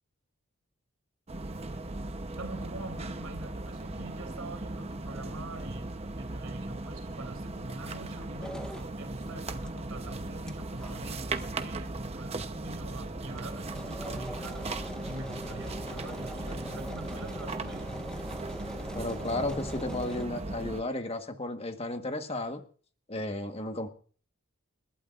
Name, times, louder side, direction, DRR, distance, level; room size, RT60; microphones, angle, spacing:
sound 1, 1.3-20.8, right 2 dB, 30° right, 0.8 m, -38 dB
voice 1, 2.4-14.7 15.1-18.0, right 2 dB, 85° right, 3.2 m, -44 dB
sound 2, 8.4-8.9 9.7-9.8 10.1-10.2 10.5-10.6 10.8-10.9 11.6-11.7 11.9-12.0 12.3-12.4 12.7-20.3, equal, 5° left, 0.5 m, -43 dB
voice 2, 18.9-22.6 23.1-23.9, left 2 dB, 30° left, 1.4 m, -33 dB
29.0 x 11.5 x 2.5 m
head